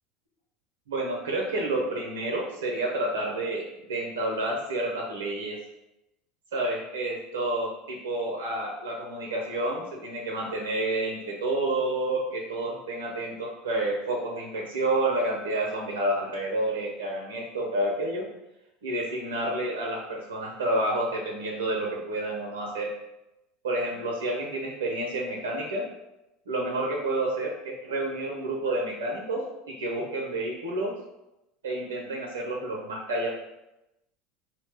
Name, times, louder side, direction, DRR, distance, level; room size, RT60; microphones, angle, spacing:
voice 1, 0.9-5.6 6.5-18.3 18.8-22.9 23.6-25.9 26.5-30.9 31.6-33.3, right 1 dB, 85° right, -1 dB, 0.5 m, -29 dB
2.8 x 2.0 x 3.2 m, 0.93 s
hypercardioid pair, 85°, 0 cm